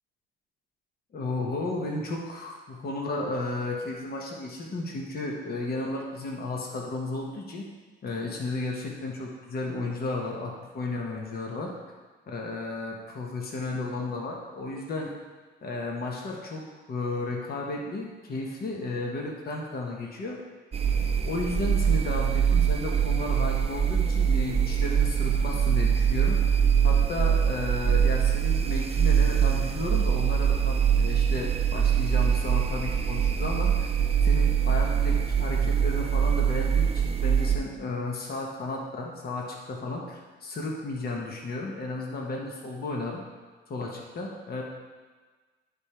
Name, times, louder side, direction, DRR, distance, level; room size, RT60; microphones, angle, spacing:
voice 1, 1.1-7.6 8.0-11.7 12.3-15.1 15.6-20.4 21.2-26.4 26.8-33.9 34.2-43.2 43.7-44.6, left 2 dB, 50° left, -1 dB, 1.2 m, -33 dB
sound 1, 20.7-37.6, right 8 dB, 30° right, 0.5 m, -23 dB
10.5 x 3.5 x 4.4 m, 1.4 s
cardioid pair, 90°, 20 cm